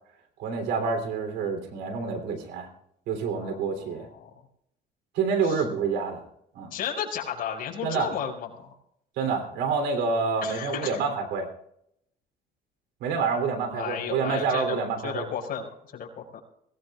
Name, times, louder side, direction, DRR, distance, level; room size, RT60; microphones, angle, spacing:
voice 1, 0.4-2.7 3.1-4.1 5.1-6.2 6.5-6.7 7.8-8.1 9.2-11.5 13.0-15.3, right 5 dB, 90° right, 6 dB, 3.2 m, -27 dB
voice 2, 3.4-4.3 5.4-5.6 6.7-8.7 10.4-11.0 13.7-16.4, left 8 dB, 60° left, -1 dB, 5.4 m, -34 dB
23.5 x 17.5 x 2.4 m, 0.74 s
cardioid pair, 110°, 17 cm